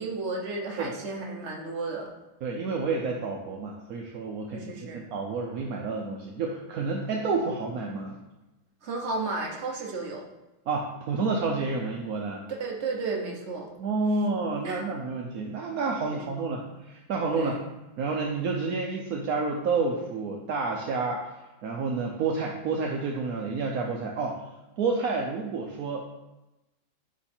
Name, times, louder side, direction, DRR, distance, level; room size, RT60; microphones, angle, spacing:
voice 1, 0.0-2.1 4.5-5.0 8.8-10.2 12.6-13.7 14.6-14.8 16.1-16.4 17.3-17.6, right 3 dB, 45° right, 0 dB, 1.1 m, -33 dB
voice 2, 2.4-8.2 10.7-12.4 13.8-17.5 18.0-24.4 24.8-26.1, right 4 dB, 70° right, 0 dB, 0.9 m, -29 dB
9.3 x 3.2 x 4.3 m, 1.0 s
omnidirectional pair, 2.2 m